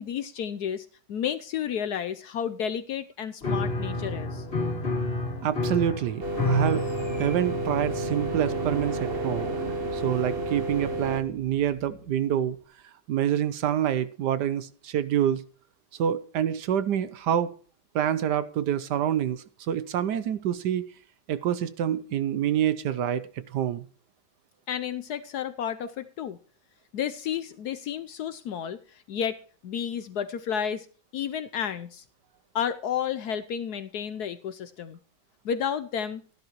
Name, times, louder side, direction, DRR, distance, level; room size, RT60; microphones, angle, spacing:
voice 1, 0.0-4.4 24.7-26.4 26.9-29.4 29.6-30.9 31.1-32.0 32.5-35.0 35.4-36.2, left 8 dB, 70° left, 12 dB, 1.0 m, -31 dB
Piano, 3.4-11.9, left 1 dB, 30° left, 2.6 m, -32 dB
voice 2, 5.4-6.9 7.2-9.6 9.9-12.6 13.1-15.4 16.0-17.5 17.9-20.9 21.3-23.9, right 10 dB, 65° right, 15 dB, 1.2 m, -27 dB
sound 1, 6.2-11.2, right 2 dB, 35° right, 1.3 m, -31 dB
13.5 x 11.5 x 3.0 m, 0.41 s
omnidirectional pair, 2.1 m